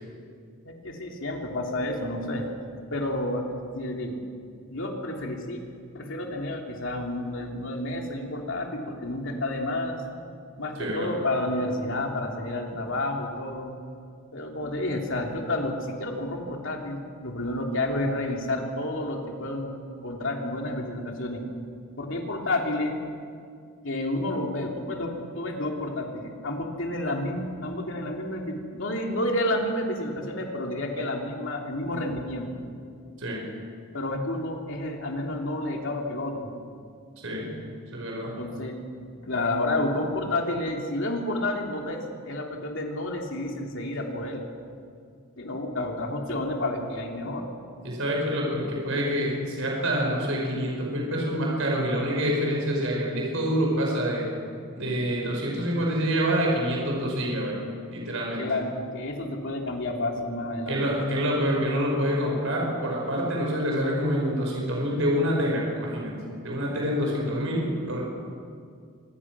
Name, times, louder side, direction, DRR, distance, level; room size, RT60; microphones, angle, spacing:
voice 1, 0.6-2.5 2.9-4.2 4.7-5.7 5.9-10.0 10.6-13.7 14.3-21.4 22.0-23.0 23.8-32.6 33.9-36.5 38.3-38.8 39.2-44.4 45.4-47.5 58.4-60.8, left 1 dB, 60° left, 1 dB, 3.1 m, -30 dB
voice 2, 10.8-11.1 12.7-12.8 33.2-33.4 37.2-37.5 37.9-38.3 47.8-54.3 54.8-57.6 57.9-58.4 60.7-66.1 66.4-68.0, equal, 65° right, -1 dB, 5.5 m, -26 dB
26.0 x 20.5 x 6.2 m, 2.2 s
head